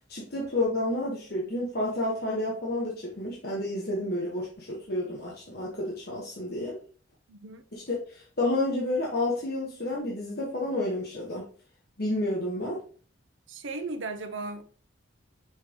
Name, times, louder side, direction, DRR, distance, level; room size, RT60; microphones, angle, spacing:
voice 1, 0.1-6.7 7.7-11.5 12.0-12.8, left 1 dB, 50° left, 1.4 m, -30 dB
voice 2, 7.3-7.6 13.5-14.6, right 3 dB, 70° right, 0.8 m, -36 dB
5.9 x 5.8 x 3.1 m
head